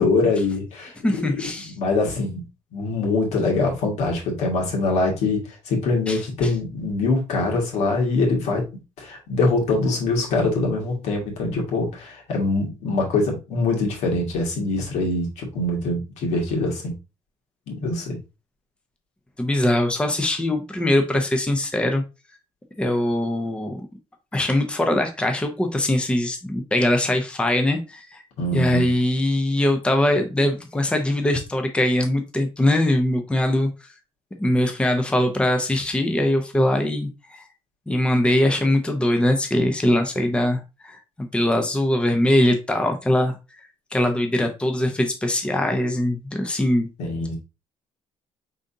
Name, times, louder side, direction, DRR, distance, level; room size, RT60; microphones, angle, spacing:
voice 1, 0.0-1.2 1.6-2.5 2.7-8.7 9.0-16.9 17.7-18.2 28.4-28.9 47.0-47.3, left 3 dB, 85° left, 0 dB, 1.8 m, -23 dB
voice 2, 1.0-1.7 6.1-6.2 19.4-22.0 22.8-23.8 24.3-28.2 28.5-33.7 34.4-37.4 37.9-43.4 43.9-46.9, left 1 dB, 10° left, 5 dB, 0.7 m, -22 dB
5.0 x 3.8 x 2.7 m, 0.28 s
cardioid pair, 130°, 11 cm